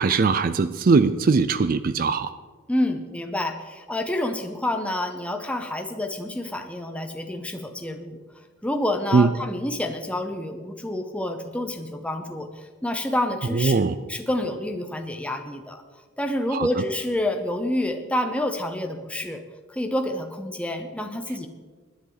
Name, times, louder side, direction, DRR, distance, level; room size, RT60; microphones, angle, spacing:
voice 1, 0.0-2.3 9.1-9.3 13.5-14.0 16.5-16.7, right 4 dB, 40° right, 13 dB, 0.4 m, -20 dB
voice 2, 2.7-8.2 8.6-13.8 14.1-15.8 16.2-19.4 19.7-21.5, left 1 dB, 5° left, 5 dB, 0.7 m, -28 dB
20.5 x 10.5 x 4.0 m, 1.4 s
head